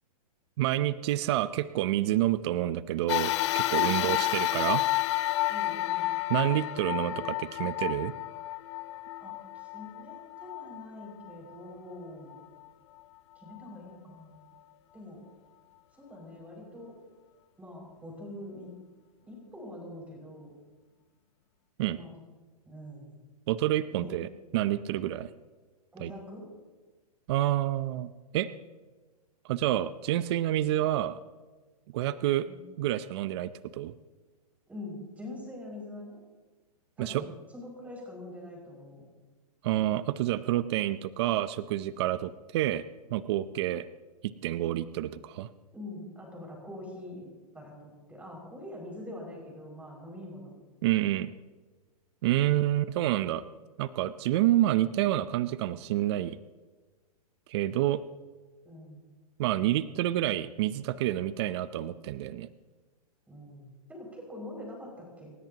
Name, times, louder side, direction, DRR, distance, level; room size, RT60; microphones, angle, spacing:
voice 1, 0.6-4.8 6.3-8.1 21.8-22.0 23.5-24.3 24.5-25.3 26.0-26.1 27.3-28.5 29.4-31.2 31.9-32.5 32.8-33.9 37.0-37.2 39.6-42.8 43.1-43.8 44.2-45.5 50.8-51.3 52.2-53.4 53.8-56.4 57.5-58.0 59.4-62.5, right 14 dB, 45° right, 14 dB, 0.6 m, -28 dB
sound 1, 3.1-11.7 12.3-12.4 13.5-13.6, left 16 dB, 45° left, 0.7 m, -30 dB
voice 2, 4.0-4.4 5.5-6.1 9.2-12.3 13.4-14.5 14.9-15.2 15.9-17.0 17.6-18.7 19.2-20.5 21.9-22.2 22.6-23.2 23.9-24.1 25.9-26.5 32.4-32.6 34.7-36.2 37.0-37.2 37.5-39.0 45.7-47.3 47.5-50.5 58.6-59.1 63.3-65.3, left 1 dB, 5° right, -2 dB, 6.0 m, -44 dB
28.0 x 13.5 x 3.0 m, 1.3 s
hypercardioid pair, 145°, 20 cm